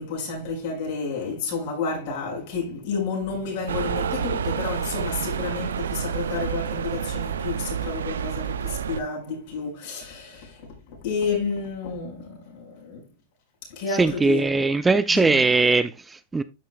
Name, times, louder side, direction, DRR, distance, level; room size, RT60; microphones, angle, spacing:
voice 1, 0.0-13.1 13.7-14.5 15.1-15.4, left 4 dB, 60° left, 5.4 m, -31 dB
sound 1, 3.7-9.0, right 7 dB, 90° right, 0.6 m, -29 dB
voice 2, 14.0-16.4, right 3 dB, 10° right, 0.5 m, -20 dB
12.0 x 5.6 x 2.3 m
hypercardioid pair, 120°, 0 cm